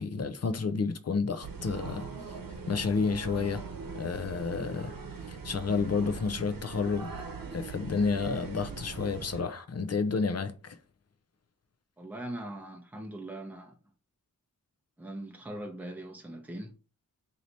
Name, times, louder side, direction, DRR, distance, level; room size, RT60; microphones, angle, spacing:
voice 1, 0.0-2.1 2.7-3.6 3.9-4.9 5.3-7.1 7.5-10.8, left 4 dB, 50° left, 0.6 m, -30 dB
sound 1, 1.4-9.4, right 5 dB, 90° right, 0.8 m, -41 dB
voice 2, 12.0-13.7 15.0-16.8, right 1 dB, 5° right, 0.7 m, -41 dB
3.2 x 2.8 x 4.1 m
wide cardioid pair, 65°, 33 cm